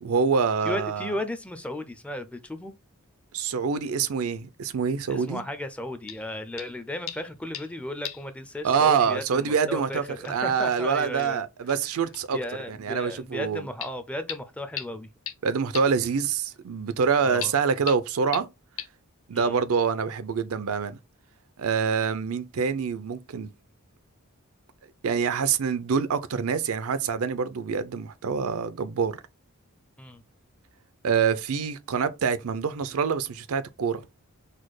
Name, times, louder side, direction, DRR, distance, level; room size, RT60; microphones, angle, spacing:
voice 1, 0.0-1.1 3.3-5.4 8.6-12.4 12.7-13.7 15.4-18.5 19.3-21.0 21.6-23.5 25.0-29.2 31.0-34.0, right 6 dB, 70° right, 0.5 m, -26 dB
voice 2, 0.6-2.7 5.1-11.4 12.3-15.1 17.2-17.5 19.3-19.6 30.0-30.2, left 1 dB, 5° left, 0.4 m, -35 dB
sound 1, 6.1-6.3 6.6-6.8 7.1-7.8 8.0-8.3 8.6-8.7 9.8-9.9 10.2-10.3 10.7-10.8 11.2-11.3 11.7-11.8 12.1-12.3 13.8-13.9 14.3-14.4 14.8-14.9 15.3-15.4 15.7-15.8 17.4-17.5 17.9-18.0 18.3-18.4 18.8-18.9, left 11 dB, 65° left, 0.5 m, -36 dB
4.2 x 2.2 x 4.6 m
head